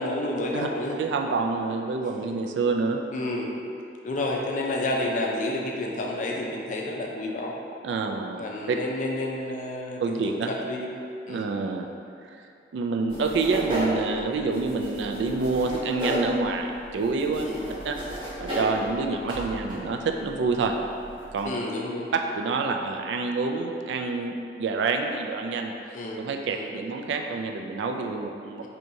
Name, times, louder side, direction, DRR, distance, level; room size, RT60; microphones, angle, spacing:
voice 1, 0.0-1.0 3.1-3.6 4.0-7.5 8.4-10.9 11.2-11.5 17.4-17.7 21.4-22.1 25.9-26.7 28.6-28.7, left 1 dB, 45° left, -1 dB, 0.4 m, -30 dB
voice 2, 1.0-3.0 7.8-8.4 8.7-8.8 10.0-10.5 11.3-11.9 12.4-12.5 12.7-17.5 17.8-18.0 18.4-20.7 21.3-21.5 22.1-25.7 26.2-28.7, right 4 dB, 85° right, 4 dB, 0.3 m, -27 dB
sound 1, 13.1-21.5, equal, 30° right, 1.2 m, -34 dB
4.4 x 2.8 x 2.7 m, 2.5 s
head